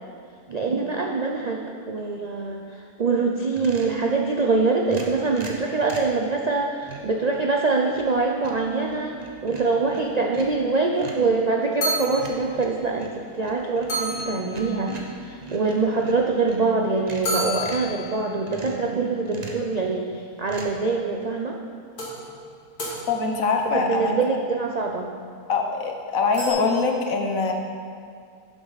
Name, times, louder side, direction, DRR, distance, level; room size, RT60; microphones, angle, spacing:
voice 1, 0.5-1.6 1.9-21.6 23.7-25.1, right 3 dB, 65° right, 0 dB, 0.4 m, -24 dB
sound 1, 3.5-4.0 4.8-6.2 6.8-7.2 7.7-8.2 8.4-10.6 11.0-11.3 12.2-16.6 17.0-17.9 18.5-18.9 19.2-19.7 20.5-20.7, right 3 dB, 30° right, 0.9 m, -40 dB
sound 2, 10.9-11.0 11.4-11.5 11.8-12.5 13.2-13.3 13.5-13.6 13.9-15.0 17.2-18.4 20.8-20.9 22.0-23.6 26.3-26.5, right 1 dB, 85° left, 2.4 m, -30 dB
voice 2, 23.1-24.1 25.5-27.5, left 4 dB, 65° left, 2 dB, 1.3 m, -23 dB
11.0 x 7.3 x 4.1 m, 2.2 s
omnidirectional pair, 1.6 m